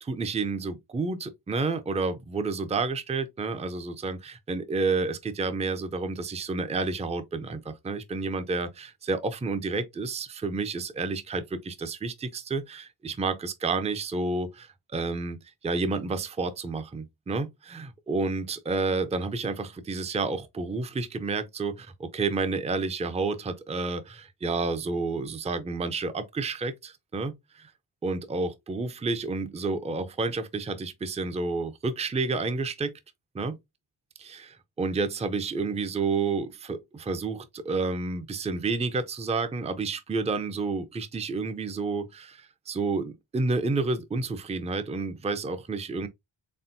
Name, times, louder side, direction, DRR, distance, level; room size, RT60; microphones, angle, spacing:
voice 1, 0.0-27.7 28.0-32.9 33.3-33.6 34.2-46.1, right 3 dB, 15° right, 0.4 m, -30 dB
4.3 x 3.6 x 2.6 m
wide cardioid pair, 110°, 49 cm